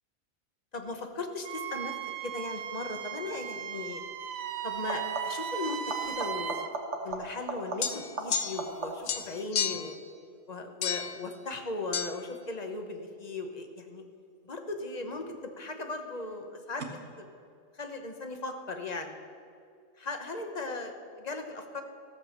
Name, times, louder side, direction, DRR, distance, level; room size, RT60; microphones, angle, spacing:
voice 1, 0.7-1.9 2.2-4.0 4.6-6.7 7.0-10.0 10.5-14.0 14.4-17.3 17.7-19.2 20.0-20.9 21.2-21.8, left 3 dB, 35° left, 5 dB, 1.0 m, -37 dB
Wind instrument woodwind instrument, 1.4-6.7, right 9 dB, 80° right, 1.1 m, -37 dB
sound 1, 3.3-3.6 4.7-5.6 5.9-9.3 14.7-15.3 16.8-16.9, right 3 dB, 55° right, 1.4 m, -38 dB
sound 2, 7.8-8.8 9.1-10.0 10.8-11.2 11.9-12.1, left 8 dB, 60° left, 0.8 m, -32 dB
14.5 x 6.9 x 7.1 m, 2.2 s
omnidirectional pair, 1.4 m